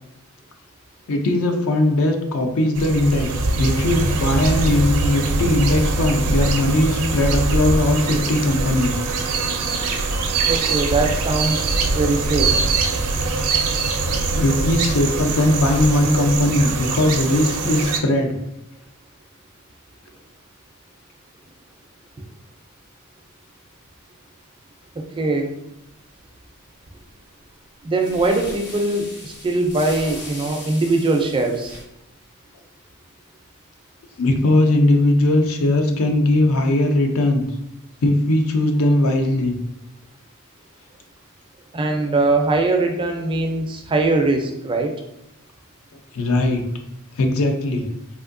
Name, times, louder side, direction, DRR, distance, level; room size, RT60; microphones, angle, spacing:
voice 1, 1.1-9.0 14.3-18.3 34.2-37.4 38.0-39.5 46.1-46.6 47.2-47.9, left 1 dB, 70° left, 4 dB, 0.5 m, -19 dB
sound 1, 2.8-18.0, right 3 dB, 90° right, 0.4 m, -22 dB
voice 2, 10.5-12.6 25.0-25.5 27.8-31.8 41.7-44.9, right 2 dB, 25° right, 4 dB, 0.4 m, -21 dB
sound 2, 26.9-27.1 28.0-31.8, left 2 dB, 55° left, 1.0 m, -38 dB
3.5 x 2.6 x 2.5 m, 0.85 s
head